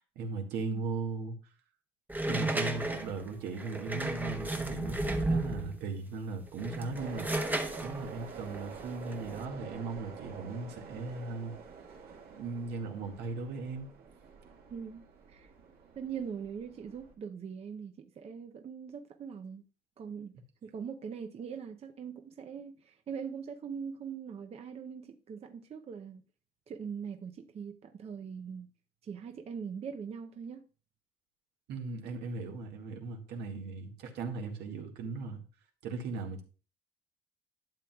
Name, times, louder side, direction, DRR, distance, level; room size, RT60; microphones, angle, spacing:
voice 1, 0.2-1.4 2.3-7.5 7.8-11.6 12.3-13.9 31.7-35.4 35.8-36.4, right 3 dB, 80° right, 1.8 m, -38 dB
sound 1, 2.1-5.8 6.5-9.4, right 2 dB, 10° right, 0.9 m, -33 dB
sound 2, 6.9-17.1, right 5 dB, 65° right, 1.7 m, -48 dB
voice 2, 14.7-15.0 15.3-15.5 16.0-19.6 20.0-20.3 20.6-26.2 26.7-28.7 29.0-30.6, right 6 dB, 35° right, 0.6 m, -41 dB
12.0 x 7.6 x 2.3 m
cardioid pair, 110°, 17 cm